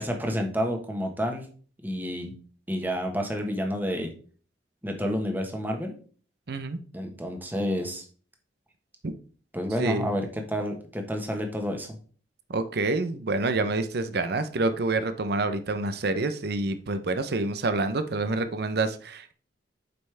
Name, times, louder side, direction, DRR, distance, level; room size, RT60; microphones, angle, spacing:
voice 1, 0.0-1.5 1.8-2.3 2.7-4.1 4.8-5.9 6.9-8.0 9.5-12.0, equal, 10° right, 3 dB, 1.3 m, -29 dB
voice 2, 6.5-6.8 9.0-9.1 9.8-10.1 12.5-19.3, right 3 dB, 60° right, 10 dB, 0.7 m, -27 dB
7.9 x 5.5 x 3.4 m, 0.40 s
head